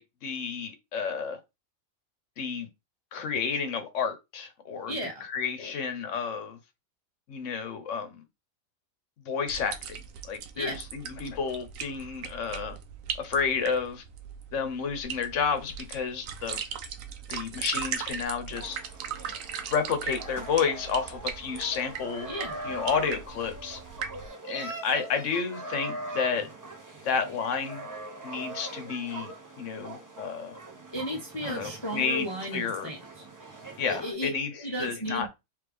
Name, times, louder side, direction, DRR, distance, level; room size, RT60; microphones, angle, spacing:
voice 1, 0.0-1.4 2.4-2.7 3.1-4.9 5.2-6.6 7.3-8.2 9.2-10.0 10.3-12.8 13.2-14.0 14.5-16.6 17.3-18.8 19.7-22.3 22.6-23.8 24.5-26.5 27.0-27.9 28.2-30.6 31.4-32.3 32.5-32.9 33.8-35.3, left 6 dB, 60° left, 1.1 m, -31 dB
voice 2, 4.9-5.2 10.5-10.8 22.3-22.7 30.9-33.2 33.9-34.3 34.6-35.3, equal, 25° left, 0.7 m, -34 dB
sound 1, 9.5-24.3, right 7 dB, 70° right, 1.0 m, -39 dB
sound 2, 18.5-34.1, right 2 dB, 25° right, 0.4 m, -42 dB
3.4 x 3.3 x 3.4 m
omnidirectional pair, 1.5 m